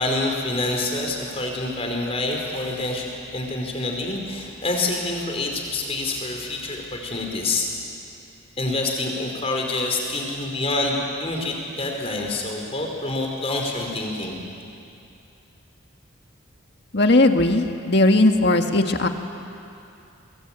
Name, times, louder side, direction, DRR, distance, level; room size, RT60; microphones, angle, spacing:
voice 1, 0.0-7.7 8.6-14.4, left 2 dB, 30° left, 0 dB, 4.6 m, -27 dB
voice 2, 16.9-19.1, left 2 dB, 55° left, 5 dB, 1.8 m, -18 dB
29.5 x 22.5 x 9.0 m, 2.6 s
head